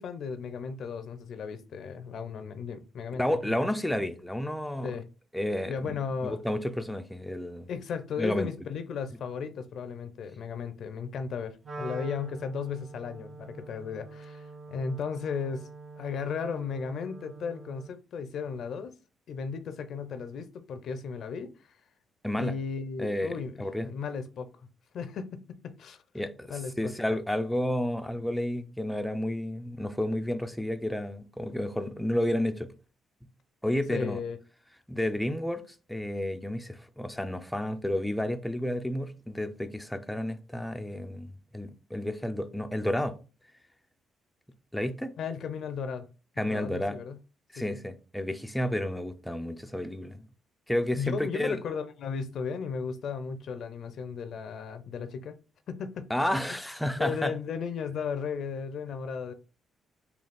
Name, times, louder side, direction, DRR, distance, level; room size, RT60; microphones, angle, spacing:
voice 1, 0.0-3.7 4.8-5.0 5.7-6.4 7.7-15.7 16.0-18.9 19.3-21.5 22.4-24.5 24.9-25.3 25.6-26.9 33.9-34.4 45.2-46.1 46.4-47.2 47.6-47.8 51.0-55.4 55.7-56.1 57.0-59.3, left 6 dB, 65° left, 0.5 m, -35 dB
voice 2, 3.2-5.0 5.3-7.7 8.2-8.5 22.2-22.5 23.0-23.9 26.1-32.7 33.6-34.2 34.9-35.6 35.9-43.2 44.7-45.1 46.4-47.0 47.5-50.3 50.7-51.6 56.1-57.3, left 1 dB, 5° left, 0.4 m, -31 dB
Wind instrument woodwind instrument, 11.6-18.0, right 3 dB, 40° right, 0.6 m, -45 dB
3.9 x 2.3 x 3.4 m
cardioid pair, 90°, 0 cm